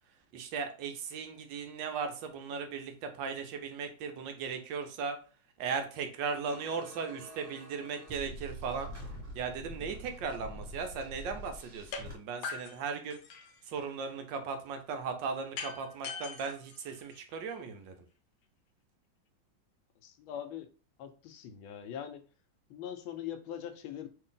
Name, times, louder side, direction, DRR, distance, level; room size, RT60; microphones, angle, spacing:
voice 1, 0.3-5.2 5.6-8.9 9.3-13.2 13.6-18.0, right 5 dB, 75° right, 6 dB, 1.3 m, -37 dB
sound 1, 6.4-12.1, equal, 15° right, 1.7 m, -46 dB
sound 2, 11.9-12.1 12.4-13.6 15.6-17.5, left 5 dB, 70° left, 1.0 m, -42 dB
voice 2, 20.0-20.7 21.0-22.3 22.7-24.1, left 9 dB, 90° left, 8 dB, 1.4 m, -42 dB
3.3 x 2.6 x 3.8 m, 0.37 s
omnidirectional pair, 2.1 m